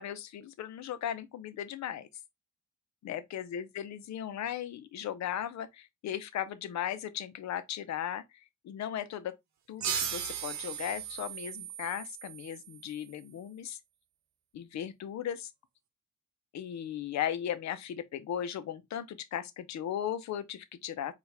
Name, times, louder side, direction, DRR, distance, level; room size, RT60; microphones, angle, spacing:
voice 1, 0.0-2.1 3.0-8.2 8.6-9.4 9.7-13.8 14.5-15.5 16.5-21.1, left 10 dB, 65° left, 0.7 m, -37 dB
sound 1, 9.8-13.0, right 8 dB, 65° right, 0.8 m, -37 dB
4.5 x 2.5 x 3.2 m
cardioid pair, 90°, 30 cm